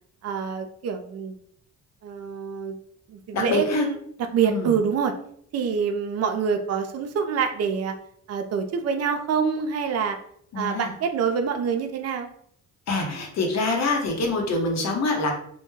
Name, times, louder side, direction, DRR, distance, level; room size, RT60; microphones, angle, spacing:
voice 1, 0.2-1.4 2.0-2.8 3.1-4.0 4.3-5.1 5.5-7.9 8.3-10.2 10.6-12.3, right 6 dB, 55° right, 5 dB, 0.5 m, -26 dB
voice 2, 3.3-3.8 4.5-4.7 10.5-10.9 12.9-15.3, left 2 dB, 60° left, 2 dB, 0.8 m, -25 dB
2.2 x 2.1 x 3.1 m, 0.64 s
cardioid pair, 90°, 30 cm